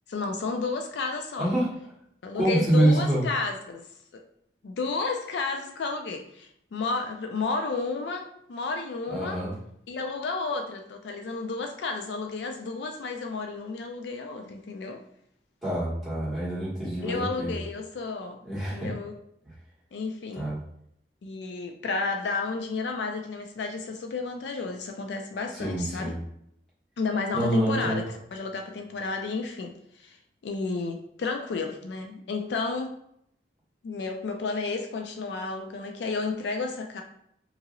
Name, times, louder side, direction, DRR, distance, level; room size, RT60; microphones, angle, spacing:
voice 1, 0.1-1.5 2.2-3.8 4.1-4.2 4.6-9.4 9.9-15.0 17.0-19.1 19.9-20.5 21.2-26.1 27.0-30.2 30.4-33.0 33.8-37.0, left 4 dB, 75° left, 4 dB, 0.4 m, -32 dB
voice 2, 2.3-3.2 9.1-9.5 15.6-17.5 18.4-18.9 20.3-20.6 25.6-26.2 27.3-28.0, right 1 dB, ahead, -9 dB, 1.4 m, -26 dB
2.9 x 2.7 x 2.5 m, 0.72 s
head